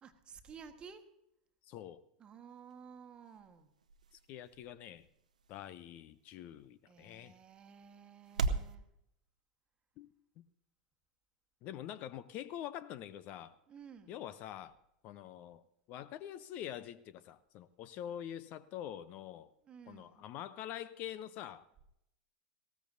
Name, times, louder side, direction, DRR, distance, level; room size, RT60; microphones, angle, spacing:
voice 1, 0.0-1.0 2.2-3.7 6.9-8.8 13.7-14.2 19.6-20.3, right 6 dB, 25° right, 7 dB, 1.4 m, -54 dB
voice 2, 1.7-2.0 4.3-5.1 5.5-7.3 10.0-10.1 10.4-10.5 11.6-13.5 14.1-14.8 15.0-15.6 15.9-19.5 19.9-21.6, left 11 dB, 40° left, 16 dB, 0.6 m, -45 dB
sound 1, 2.5-8.7, right 4 dB, 75° right, 0.8 m, -42 dB
19.5 x 16.5 x 2.7 m, 0.79 s
figure-of-eight pair, 85°, 4 cm